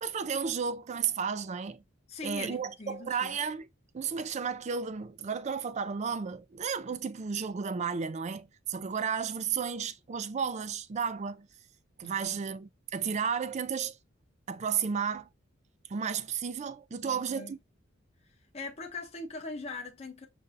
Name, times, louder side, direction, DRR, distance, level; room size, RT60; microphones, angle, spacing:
voice 1, 0.0-1.8 2.2-3.7 3.9-11.5 12.0-14.0 14.5-15.3 15.9-17.6, right 6 dB, 35° right, 0.4 m, -33 dB
voice 2, 2.1-3.4 12.0-12.4 17.0-17.5 18.5-20.3, left 3 dB, 30° left, 0.7 m, -41 dB
6.4 x 2.6 x 2.5 m
head